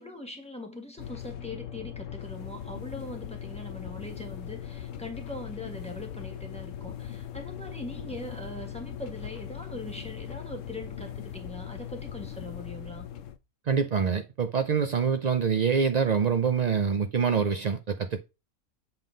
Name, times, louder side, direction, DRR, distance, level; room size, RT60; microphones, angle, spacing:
voice 1, 0.0-13.1, left 1 dB, 5° left, 1.7 m, -41 dB
sound 1, 1.0-13.4, left 10 dB, 70° left, 0.9 m, -40 dB
voice 2, 13.7-18.2, right 6 dB, 70° right, 0.4 m, -25 dB
8.0 x 3.7 x 5.1 m
omnidirectional pair, 1.5 m